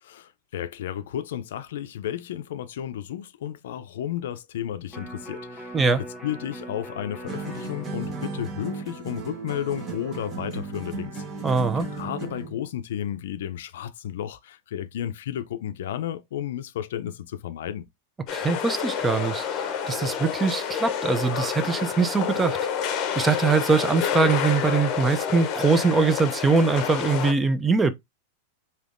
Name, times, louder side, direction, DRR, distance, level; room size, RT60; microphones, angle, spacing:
voice 1, 0.0-11.2 11.9-17.9, left 10 dB, 75° left, 0.4 m, -33 dB
Electric guitar, 4.9-11.1 11.5-11.6, right 1 dB, 5° left, 1.0 m, -42 dB
sound 1, 7.3-12.6, right 4 dB, 30° right, 1.1 m, -35 dB
voice 2, 11.4-11.9 18.3-22.6 22.9-27.9, right 4 dB, 15° right, 0.4 m, -22 dB
sound 2, 18.3-27.3, left 7 dB, 40° left, 0.7 m, -28 dB
3.4 x 2.8 x 2.5 m
supercardioid pair, 130°, 0 cm